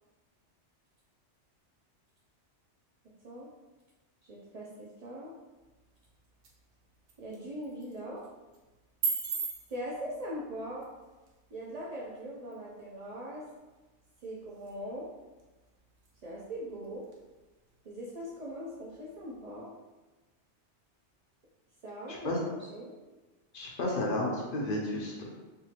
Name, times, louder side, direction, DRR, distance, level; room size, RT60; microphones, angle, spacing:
voice 1, 4.2-5.3 7.2-8.3 9.7-10.9 11.5-13.5 14.2-15.1 16.2-17.1 17.8-19.7 21.8-22.3 22.6-22.9, equal, 60° right, -3 dB, 0.4 m, -41 dB
sound 1, 5.6-19.6, right 5 dB, 80° right, 1.0 m, -44 dB
voice 2, 22.1-22.4 23.5-25.3, left 1 dB, 55° left, -2 dB, 0.7 m, -32 dB
3.6 x 2.4 x 2.8 m, 1.2 s
omnidirectional pair, 1.2 m